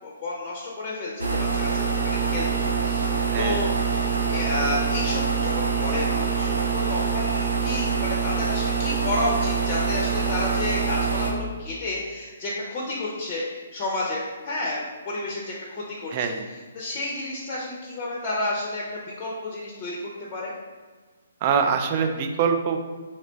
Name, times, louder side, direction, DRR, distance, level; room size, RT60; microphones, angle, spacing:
voice 1, 0.0-3.1 3.4-16.3 16.7-18.8 19.2-20.5, left 2 dB, 30° left, -3 dB, 0.6 m, -31 dB
sound 1, 1.2-11.3, right 5 dB, 85° right, 0.6 m, -25 dB
voice 2, 3.3-3.7 16.1-16.5 21.4-22.8, right 6 dB, 35° right, 5 dB, 0.4 m, -24 dB
3.1 x 2.1 x 3.8 m, 1.4 s
figure-of-eight pair, 135°, 0 cm